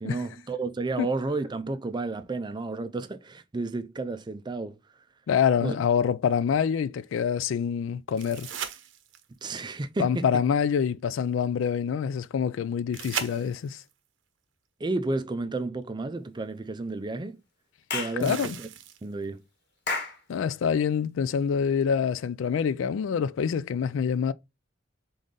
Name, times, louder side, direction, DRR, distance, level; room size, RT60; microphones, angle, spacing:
voice 1, 0.0-4.8 5.6-5.7 9.4-10.2 14.8-17.4 17.9-18.7 19.0-19.4, right 3 dB, 25° right, 0.4 m, -31 dB
voice 2, 5.3-8.5 10.0-13.8 18.2-18.6 20.3-24.3, left 7 dB, 75° left, 0.3 m, -26 dB
sound 1, 8.2-9.4 12.9-13.9 15.8-15.9 18.2-19.2 22.2-22.3, right 8 dB, 75° right, 0.7 m, -37 dB
Clapping / Chirp tweet, 17.9-18.2 19.9-20.2, left 4 dB, 60° left, 1.4 m, -30 dB
3.9 x 3.8 x 3.6 m
head